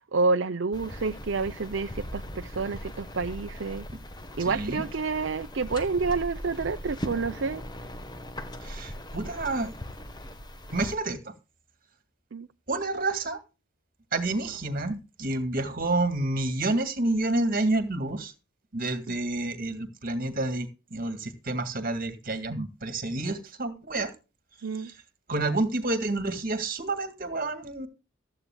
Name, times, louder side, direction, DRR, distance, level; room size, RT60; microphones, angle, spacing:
voice 1, 0.1-3.8 4.4-7.6 12.3-12.5 19.1-19.2 24.6-24.9, right 4 dB, 60° right, 0.6 m, -29 dB
sound 1, 0.7-11.0, equal, 20° left, 1.2 m, -39 dB
voice 2, 4.4-4.8 8.6-9.7 10.7-11.2 12.7-13.4 14.1-18.3 18.7-24.1 24.8-24.9 25.3-27.9, right 2 dB, 45° right, 1.9 m, -29 dB
15.0 x 13.0 x 2.2 m
head